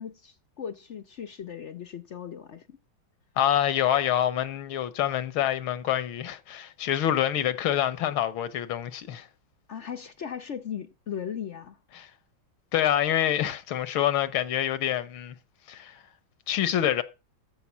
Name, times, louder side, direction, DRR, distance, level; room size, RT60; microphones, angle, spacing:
voice 1, 0.0-2.8 9.7-11.8, left 8 dB, 60° left, 0.7 m, -37 dB
voice 2, 3.4-9.3 12.0-12.1 12.7-15.4 15.7-16.0 16.5-17.0, left 11 dB, 85° left, 1.9 m, -26 dB
14.0 x 5.5 x 7.2 m
omnidirectional pair, 2.2 m